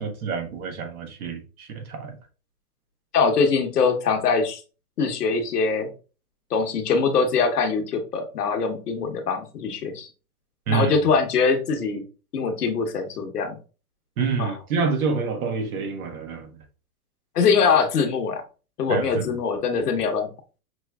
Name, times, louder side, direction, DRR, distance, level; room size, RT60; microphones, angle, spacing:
voice 1, 0.0-2.1 10.7-11.1 14.2-16.5 18.9-19.4, right 5 dB, 70° right, 1.5 m, -27 dB
voice 2, 3.1-4.6 5.0-5.9 6.5-10.1 10.7-12.0 12.3-13.5 14.4-14.5 17.3-18.4 18.8-20.3, left 5 dB, 90° left, 1.2 m, -22 dB
6.0 x 3.1 x 2.3 m
hypercardioid pair, 130°, 45 cm